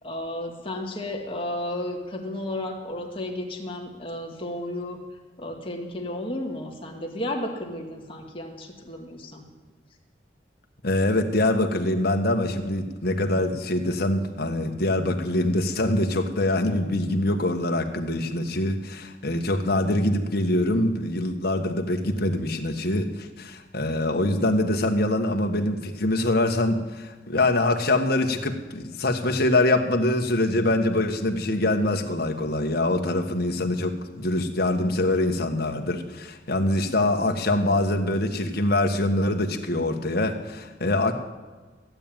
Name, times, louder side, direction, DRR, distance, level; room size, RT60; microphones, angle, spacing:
voice 1, 0.0-5.0 5.4-9.4, left 1 dB, 30° left, 1 dB, 2.3 m, -33 dB
voice 2, 10.8-41.1, left 1 dB, 60° left, 4 dB, 1.5 m, -24 dB
15.0 x 9.1 x 9.1 m, 1.4 s
head